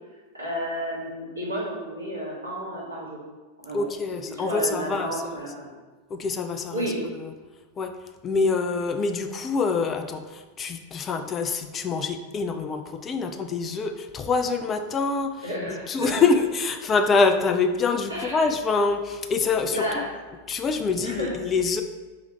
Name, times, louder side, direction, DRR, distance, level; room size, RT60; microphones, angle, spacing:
voice 1, 0.3-3.3 3.6-3.8 4.3-5.7 6.7-7.0 15.4-16.1 18.1-18.5 19.7-20.0 21.0-21.3, equal, 80° right, -6 dB, 1.4 m, -31 dB
voice 2, 3.7-5.2 6.1-6.9 7.2-7.3 7.8-7.9 8.2-20.0 20.5-21.8, left 4 dB, 25° left, 7 dB, 0.3 m, -25 dB
4.0 x 3.0 x 4.1 m, 1.3 s
figure-of-eight pair, 90°, 0 cm